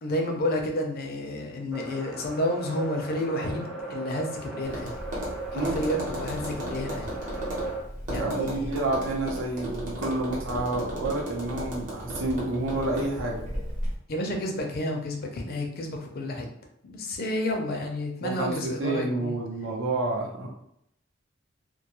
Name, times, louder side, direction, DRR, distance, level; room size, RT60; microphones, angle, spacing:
voice 1, 0.0-4.9 5.5-7.1 8.1-8.7 14.1-16.5 16.8-19.4, left 1 dB, 50° left, 2 dB, 0.5 m, -30 dB
sound 1, 1.7-7.8, right 3 dB, 5° right, 0.5 m, -38 dB
Tap, 4.6-13.9, equal, 45° right, 0.9 m, -35 dB
voice 2, 8.1-13.4 18.2-20.5, right 2 dB, 80° right, -1 dB, 0.7 m, -29 dB
2.2 x 2.2 x 2.9 m, 0.75 s
head